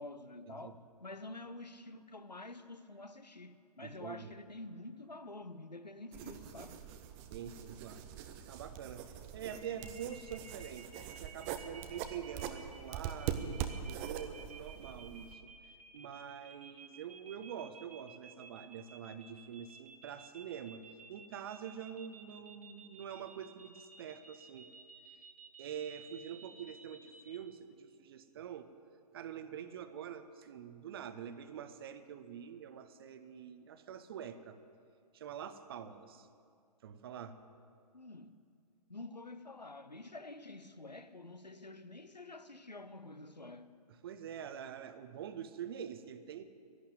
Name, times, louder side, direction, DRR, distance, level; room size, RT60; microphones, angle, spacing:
voice 1, 0.0-6.8 37.9-38.4 38.9-43.8, left 2 dB, 90° left, 0.8 m, -48 dB
voice 2, 3.8-4.3 7.3-8.1 8.5-15.5 15.9-20.8 21.1-24.7 25.6-28.7 29.1-34.6 35.1-36.3 36.8-37.4 44.0-46.4, right 8 dB, 35° right, 0.7 m, -46 dB
sound 1, 6.1-15.3, right 9 dB, 10° right, 0.3 m, -43 dB
sound 2, 9.5-27.3, right 5 dB, 60° right, 1.3 m, -55 dB
11.5 x 11.0 x 9.0 m
figure-of-eight pair, 125°, 21 cm